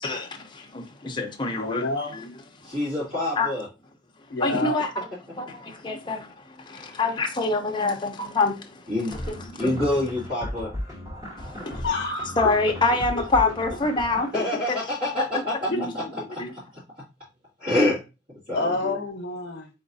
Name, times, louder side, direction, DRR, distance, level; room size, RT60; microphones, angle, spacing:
voice 1, 0.0-1.9 2.1-2.3 2.6-2.8 3.4-3.5 4.4-5.1 5.3-8.9 9.3-9.8 11.4-11.9 12.4-14.4 15.7-15.9 16.4-16.5, left 3 dB, 25° left, 0.7 m, -26 dB
voice 2, 1.6-2.2 4.3-4.8 11.8-12.6 15.3-15.4 15.7-15.8 18.5-19.7, left 2 dB, 75° left, 0.8 m, -28 dB
voice 3, 2.6-3.7 6.7-7.0 8.9-9.1 9.5-10.7 14.3-16.0 16.3-16.6 17.6-18.0 18.5-19.0, left 1 dB, 50° right, 2.6 m, -27 dB
sound 1, 9.1-14.3, equal, 20° right, 1.3 m, -36 dB
4.3 x 3.9 x 2.6 m
head